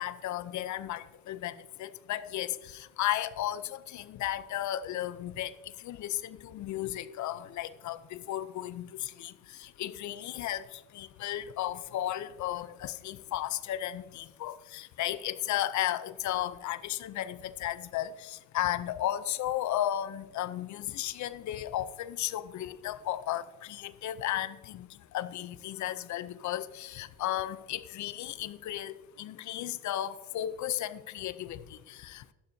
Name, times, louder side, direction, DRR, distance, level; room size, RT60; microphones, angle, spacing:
voice 1, 0.0-32.3, left 13 dB, 70° left, 15 dB, 0.6 m, -34 dB
12.5 x 11.5 x 2.7 m, 1.2 s
cardioid pair, 90°, 30 cm